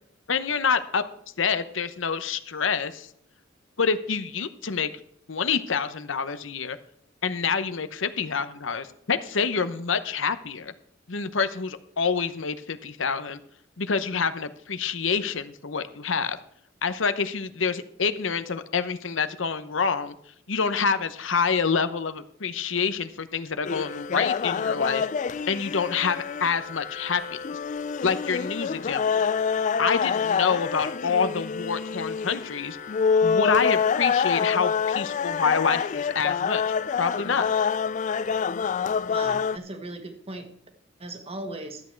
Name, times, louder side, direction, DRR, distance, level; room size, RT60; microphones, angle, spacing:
voice 1, 0.3-1.0 1.4-3.1 3.8-4.9 5.3-6.8 7.2-10.7 11.1-13.4 13.8-16.4 16.8-20.1 20.5-25.1 25.5-27.4 28.0-29.2 29.8-32.8 33.2-36.6 37.0-37.5, left 5 dB, 70° left, 12 dB, 0.9 m, -27 dB
sound 1, 23.6-39.6, left 6 dB, 40° left, 0.4 m, -26 dB
voice 2, 39.1-40.5 41.0-41.8, right 2 dB, 30° right, 5 dB, 1.6 m, -37 dB
13.0 x 8.6 x 4.5 m, 0.68 s
head